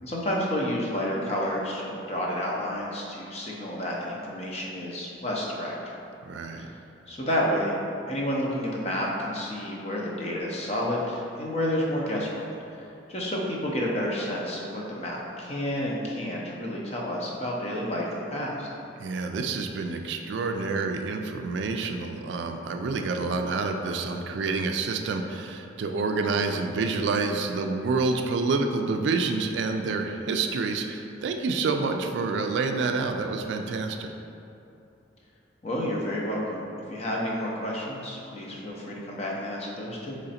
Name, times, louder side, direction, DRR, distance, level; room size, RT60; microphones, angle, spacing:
voice 1, 0.0-5.9 6.6-6.8 7.1-7.8 8.1-12.4 12.7-18.7 35.6-40.2, equal, 35° left, -3 dB, 0.6 m, -30 dB
voice 2, 6.3-6.7 19.0-34.1, right 4 dB, 70° right, 5 dB, 0.3 m, -28 dB
3.8 x 3.1 x 4.2 m, 2.7 s
head